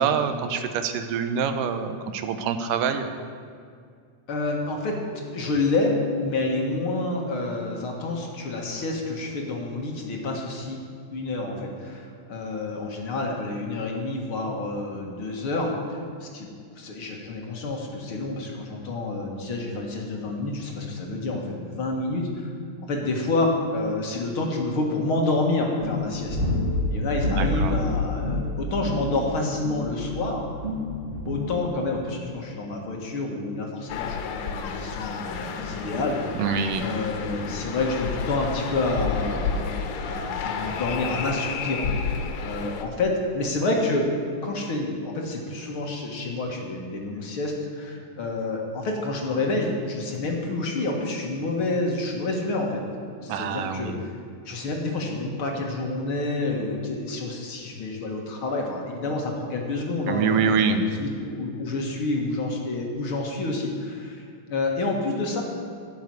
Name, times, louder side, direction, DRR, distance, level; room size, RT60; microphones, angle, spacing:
voice 1, 0.0-3.1 27.4-27.8 36.4-36.9 53.3-54.0 60.1-60.9, right 6 dB, 80° right, 8 dB, 2.4 m, -25 dB
voice 2, 4.3-5.0 5.3-10.8 11.1-16.5 16.8-22.5 22.9-26.4 26.9-30.5 31.2-36.4 36.8-39.7 40.0-44.1 44.4-53.9 54.5-64.2 64.5-65.4, left 2 dB, 50° left, 0 dB, 2.0 m, -28 dB
sound 1, 25.8-32.0, left 2 dB, 20° right, 1.8 m, -28 dB
sound 2, 33.9-42.9, left 5 dB, 80° left, 2.5 m, -31 dB
12.5 x 7.3 x 9.4 m, 2.2 s
omnidirectional pair, 3.8 m